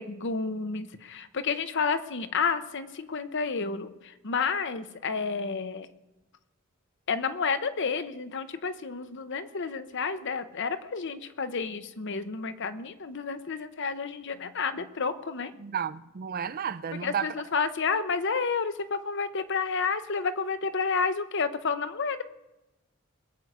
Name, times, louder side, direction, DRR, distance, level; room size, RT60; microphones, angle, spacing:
voice 1, 0.0-5.9 7.1-15.5 17.0-22.2, left 5 dB, 60° left, 0.8 m, -30 dB
voice 2, 15.6-17.3, right 7 dB, 45° right, 0.4 m, -32 dB
21.0 x 8.0 x 4.9 m
head